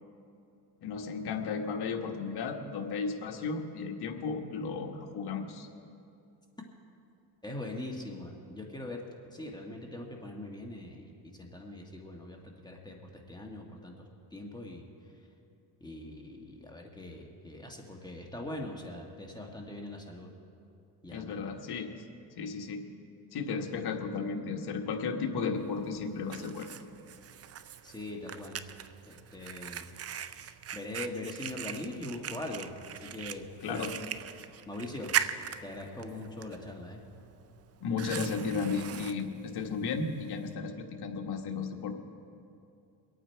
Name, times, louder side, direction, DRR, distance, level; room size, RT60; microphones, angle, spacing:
voice 1, 0.8-5.7 21.1-21.9 22.4-22.9 23.3-26.7 33.6-33.9 37.8-41.9, left 5 dB, 55° left, 3 dB, 1.5 m, -34 dB
voice 2, 7.4-9.0 9.3-14.9 15.8-20.3 21.0-21.4 27.8-28.6 29.1-29.9 30.7-33.8 34.7-35.2 35.6-37.0, left 1 dB, 10° left, 0 dB, 1.6 m, -42 dB
Fire, 25.6-40.5, right 9 dB, 35° right, 0.5 m, -40 dB
24.0 x 8.9 x 4.6 m, 2.7 s
cardioid pair, 105°, 46 cm